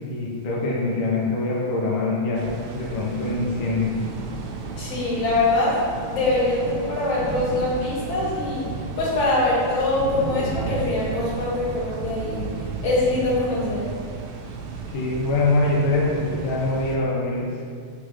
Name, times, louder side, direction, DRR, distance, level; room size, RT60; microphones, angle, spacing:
voice 1, 0.0-3.9 14.9-17.5, left 2 dB, 75° left, -4 dB, 1.2 m, -24 dB
sound 1, 2.3-17.0, right 4 dB, 85° right, 2.3 m, -33 dB
voice 2, 4.8-8.7 9.0-12.5 12.8-13.9, left 2 dB, 60° left, -8 dB, 3.0 m, -23 dB
6.3 x 5.9 x 3.2 m, 2.1 s
omnidirectional pair, 4.0 m